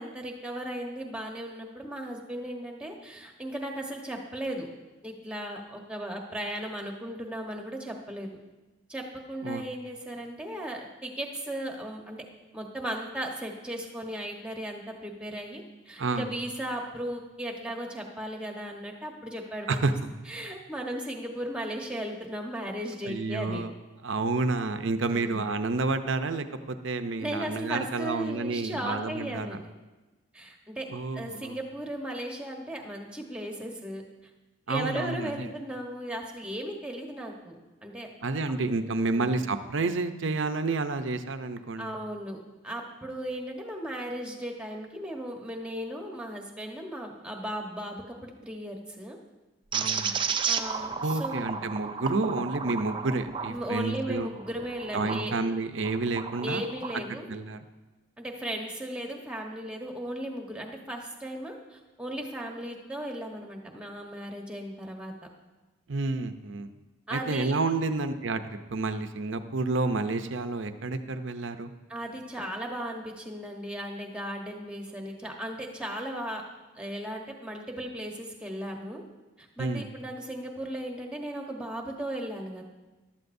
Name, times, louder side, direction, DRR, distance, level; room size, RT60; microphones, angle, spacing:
voice 1, 0.0-4.7 5.0-8.3 8.9-12.2 12.5-19.9 20.3-23.6 25.1-25.4 27.2-29.6 30.3-30.9 31.1-34.0 34.7-38.1 38.9-39.4 41.8-42.4 42.6-49.2 50.5-51.5 53.5-55.3 56.4-57.4 58.2-65.1 67.1-67.6 71.9-76.4 76.7-79.0 79.4-82.6, right 1 dB, 5° right, 1 dB, 1.1 m, -36 dB
voice 2, 19.7-20.1 23.0-23.7 24.0-29.6 30.9-31.6 34.7-35.5 38.2-41.9 49.7-50.3 51.0-54.3 54.9-56.7 57.3-57.6 65.9-66.7 67.1-71.7 79.6-79.9, right 3 dB, 60° right, 9 dB, 0.6 m, -30 dB
sound 1, 49.7-55.3 55.8-57.0, right 6 dB, 25° right, 0.4 m, -33 dB
14.5 x 12.0 x 2.7 m, 1.2 s
head